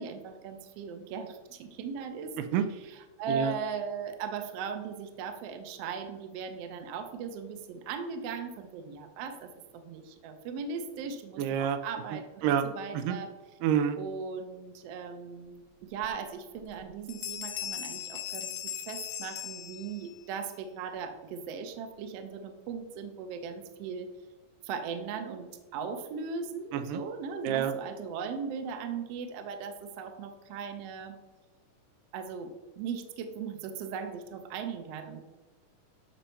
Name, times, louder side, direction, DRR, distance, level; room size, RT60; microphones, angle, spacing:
voice 1, 0.0-13.3 14.0-24.1 24.6-31.2 32.1-35.2, right 6 dB, 65° right, 7 dB, 1.6 m, -38 dB
voice 2, 11.4-11.8 12.4-12.7 12.9-13.1 13.6-14.0 26.7-27.0 27.4-27.7, right 9 dB, 85° right, 8 dB, 2.4 m, -27 dB
Bell, 16.0-16.1 16.6-16.8 17.1-20.2, left 11 dB, 80° left, 2.7 m, -39 dB
12.5 x 4.3 x 5.7 m, 1.2 s
omnidirectional pair, 3.9 m